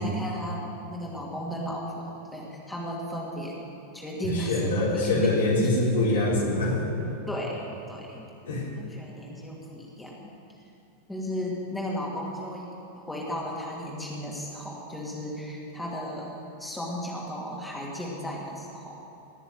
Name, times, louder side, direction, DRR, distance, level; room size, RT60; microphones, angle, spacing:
voice 1, 0.0-3.6 3.9-5.7 6.1-6.2 7.3-8.3 8.8-10.3 11.1-12.7 13.0-18.9, equal, 5° left, -4 dB, 2.6 m, -35 dB
voice 2, 4.3-7.1 8.5-8.7, left 2 dB, 65° left, -5 dB, 4.3 m, -24 dB
20.0 x 6.9 x 9.1 m, 2.8 s
figure-of-eight pair, 90°, 0 cm